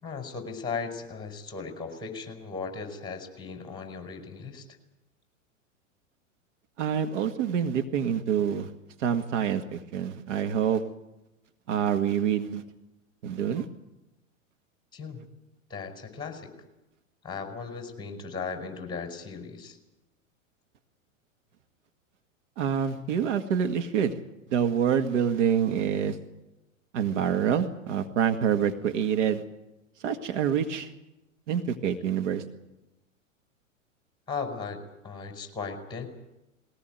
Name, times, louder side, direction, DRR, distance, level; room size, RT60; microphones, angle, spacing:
voice 1, 0.0-4.7 14.9-15.2 15.7-16.5 17.2-19.8 34.3-36.1, left 5 dB, 10° left, 5 dB, 5.1 m, -37 dB
voice 2, 6.8-8.7 9.0-10.8 11.7-12.6 13.2-13.7 22.6-24.1 24.5-26.2 26.9-29.4 30.0-30.9 31.5-32.4, right 8 dB, 65° right, 7 dB, 2.0 m, -26 dB
21.0 x 18.5 x 9.3 m, 0.96 s
hypercardioid pair, 105°, 39 cm